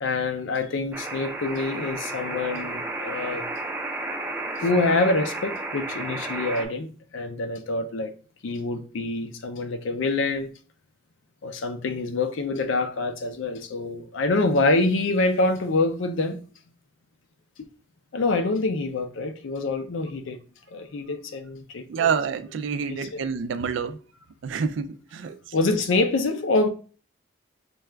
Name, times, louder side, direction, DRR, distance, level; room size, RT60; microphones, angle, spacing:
voice 1, 0.0-3.4 4.6-8.1 8.4-10.5 11.4-16.4 18.1-20.4 20.7-22.2 22.9-23.3 25.5-26.7, left 2 dB, 80° left, 0.4 m, -26 dB
sound 1, 0.9-6.6, right 2 dB, 10° right, 0.5 m, -32 dB
voice 2, 21.9-24.0 24.4-24.9 25.1-25.4, right 6 dB, 70° right, 0.3 m, -27 dB
4.6 x 2.3 x 3.2 m
head